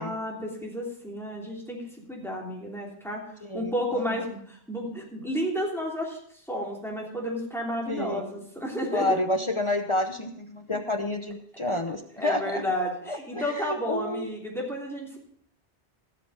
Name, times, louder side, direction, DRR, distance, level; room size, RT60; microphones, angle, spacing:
voice 1, 0.0-1.8 2.1-3.2 3.5-6.2 6.5-9.2 10.7-10.8 12.2-15.2, equal, ahead, -3 dB, 3.1 m, -32 dB
voice 2, 3.4-4.2 7.9-8.3 8.9-12.7 13.1-14.3, left 1 dB, 30° left, 6 dB, 0.8 m, -29 dB
16.5 x 6.8 x 5.0 m, 0.63 s
omnidirectional pair, 1.0 m